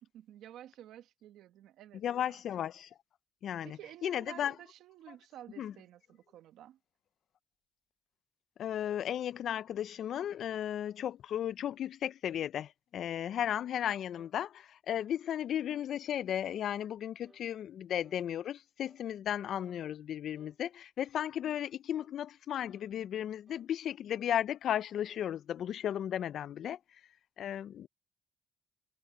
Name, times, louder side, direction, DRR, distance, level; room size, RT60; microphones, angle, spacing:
voice 1, 0.0-2.4 3.6-6.8, right 12 dB, 85° right, 1.3 m, -52 dB
voice 2, 2.0-2.9 3.4-4.5 5.6-5.7 8.6-26.8 27.4-27.9, left 10 dB, 70° left, 0.3 m, -35 dB
sound 1, 13.4-13.6 14.1-14.4 14.9-15.1 15.7-15.9 16.5-16.7 17.2-17.5 18.0-18.3 18.8-19.0 19.6-19.8 20.4-20.6 21.1-21.4 21.9-22.2 22.7-22.9 23.5-23.7 24.3-24.5 25.0-25.3, right 3 dB, 20° right, 1.5 m, -64 dB
cardioid pair, 90°, 0 cm